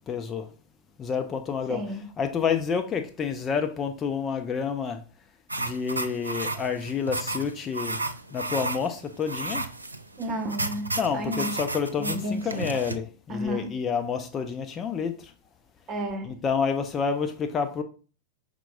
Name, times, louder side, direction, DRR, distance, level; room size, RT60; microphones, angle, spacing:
voice 1, 0.1-0.4 1.0-1.8 2.2-5.0 5.6-8.0 8.3-9.6 11.0-15.1 16.2-17.8, left 6 dB, 25° left, 0.5 m, -29 dB
voice 2, 1.7-2.0 10.2-10.8 11.1-11.5 12.0-12.7 13.3-13.7 15.9-16.3, equal, 30° right, 0.9 m, -31 dB
sound 1, 5.5-13.0, right 2 dB, 80° right, 0.3 m, -33 dB
5.8 x 3.6 x 2.3 m
figure-of-eight pair, 90°, 0 cm